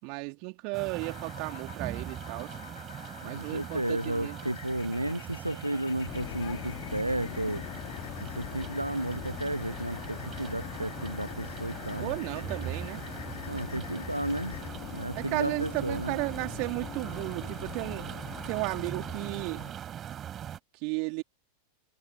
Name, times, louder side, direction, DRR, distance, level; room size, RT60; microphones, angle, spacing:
voice 1, 0.0-2.6 3.2-4.4 12.0-13.1 15.1-18.1 18.5-19.7 20.8-21.2, right 35 dB, 45° right, 3.6 m, -34 dB
Room tone with rain outside, 0.7-20.6, right 10 dB, 25° right, 6.2 m, -41 dB
sound 1, 1.0-14.7, left 10 dB, 65° left, 4.2 m, -49 dB
voice 2, 3.2-7.6 8.2-12.1 13.5-14.5 14.9-16.1, right 1 dB, 85° right, 1.0 m, -33 dB
sound 2, 6.0-19.7, left 27 dB, 45° left, 1.9 m, -42 dB
figure-of-eight pair, 90°, 0 cm